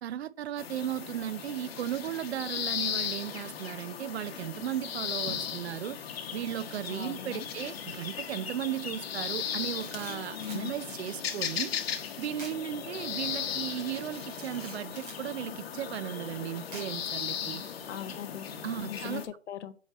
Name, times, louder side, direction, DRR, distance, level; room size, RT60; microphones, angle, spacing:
voice 1, 0.0-6.0 6.3-11.8 12.2-17.6 18.6-19.2, right 11 dB, 65° right, 0.5 m, -36 dB
sound 1, 0.6-19.3, left 8 dB, 60° left, 0.9 m, -37 dB
voice 2, 6.9-7.5 10.3-10.7 17.9-18.5 18.8-19.8, left 9 dB, 85° left, 0.6 m, -39 dB
Camera, 9.5-10.7 12.4-12.6 13.0-13.1 14.1-15.2 16.7-17.1, right 1 dB, 5° right, 0.4 m, -47 dB
7.1 x 3.0 x 4.4 m
hypercardioid pair, 150°, 34 cm